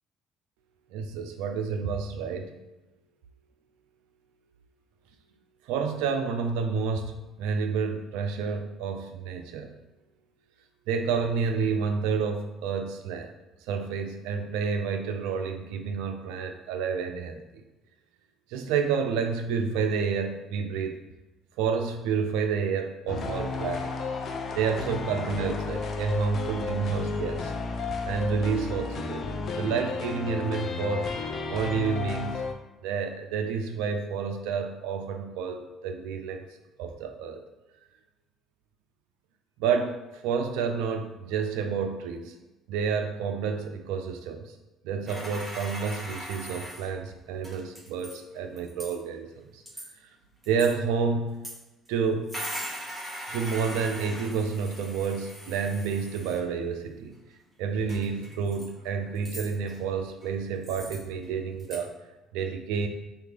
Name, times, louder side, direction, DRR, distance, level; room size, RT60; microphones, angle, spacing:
voice 1, 0.9-2.6 5.7-9.7 10.9-13.3 13.7-17.4 18.5-21.0 21.6-23.9 24.6-27.5 28.0-29.2 29.5-31.1 31.5-32.4 32.8-36.5 36.8-37.4 39.6-42.3 42.7-44.5 44.8-49.6 50.5-51.4 51.9-52.6 53.3-57.2 57.6-61.9 62.3-62.9, right 5 dB, 85° right, 6 dB, 0.4 m, -29 dB
sound 1, 23.1-32.5, left 4 dB, 50° left, 0.4 m, -32 dB
sound 2, 45.1-46.9 47.4-48.2 48.6-49.0 49.7-49.9 50.4-50.8 51.4-51.5 51.9-52.0 52.3-56.4 57.1-57.2 57.9-58.7 59.2-59.8 60.2-60.3 60.6-61.2 61.6-61.8, equal, 20° right, 1.2 m, -40 dB
3.3 x 2.3 x 3.3 m, 1.1 s
supercardioid pair, 80°, 0 cm